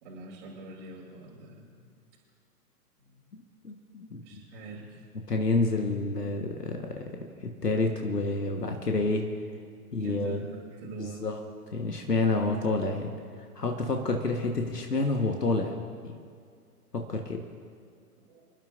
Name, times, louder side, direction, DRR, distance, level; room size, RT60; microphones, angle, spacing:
voice 1, 0.0-1.7 3.0-3.2 4.2-5.1 10.0-10.4 10.7-11.3 18.2-18.4, right 3 dB, 35° right, -5 dB, 2.5 m, -44 dB
voice 2, 3.3-4.4 5.3-7.1 7.4-9.3 9.9-10.4 11.0-11.4 11.7-13.1 13.6-15.8 16.0-16.1 16.9-17.5, left 3 dB, 80° left, 3 dB, 1.5 m, -29 dB
28.0 x 11.5 x 2.6 m, 2.2 s
figure-of-eight pair, 120°, 47 cm